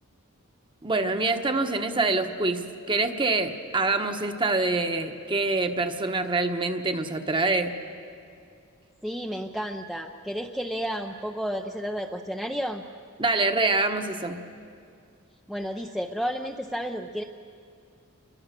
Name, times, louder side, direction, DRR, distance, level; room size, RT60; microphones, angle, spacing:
voice 1, 0.8-7.7 13.2-14.4, right 3 dB, 20° right, 6 dB, 1.2 m, -25 dB
voice 2, 9.0-12.8 15.5-17.2, equal, ahead, 2 dB, 0.6 m, -31 dB
28.0 x 22.5 x 6.8 m, 2.4 s
head